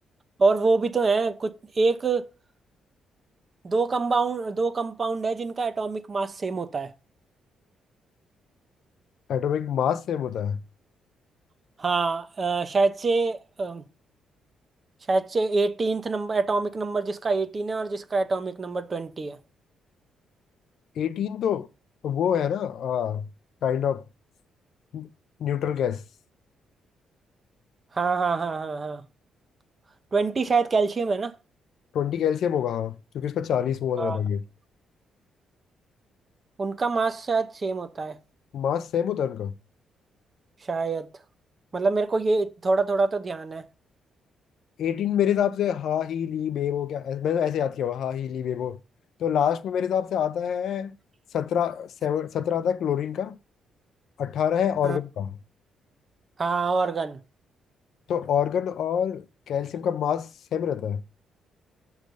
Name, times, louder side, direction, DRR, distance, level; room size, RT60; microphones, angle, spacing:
voice 1, 0.4-2.3 3.6-6.9 11.8-13.8 15.1-19.4 27.9-29.0 30.1-31.3 34.0-34.2 36.6-38.2 40.7-41.1 41.7-43.7 54.8-55.0 56.4-57.2, right 3 dB, 30° right, 0.6 m, -25 dB
voice 2, 9.3-10.6 21.0-21.7 22.0-23.3 23.6-24.0 24.9-25.1 25.4-26.0 31.9-34.4 38.5-39.5 44.8-48.8 49.2-50.9 51.3-53.3 54.2-55.4 58.1-61.0, left 9 dB, 70° left, 0.5 m, -26 dB
6.5 x 3.2 x 5.1 m
cardioid pair, 130°, 0 cm